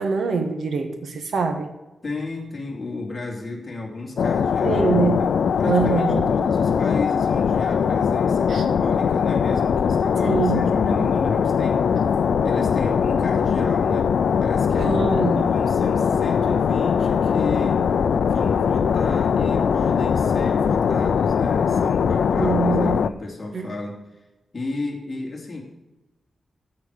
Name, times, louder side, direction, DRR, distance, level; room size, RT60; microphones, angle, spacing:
voice 1, 0.0-1.7 4.6-5.2 5.7-6.3 8.5-8.6 10.2-10.6 14.8-15.5 22.3-23.0 23.5-23.7, right 4 dB, 70° right, 5 dB, 1.7 m, -23 dB
voice 2, 2.0-4.9 5.2-11.9 12.4-14.1 14.4-17.8 18.2-24.0 24.5-25.6, left 2 dB, 30° left, -2 dB, 2.9 m, -33 dB
sound 1, 4.2-23.1, left 6 dB, 80° left, 0.5 m, -21 dB
14.0 x 4.8 x 6.6 m, 1.1 s
wide cardioid pair, 145°, 0 cm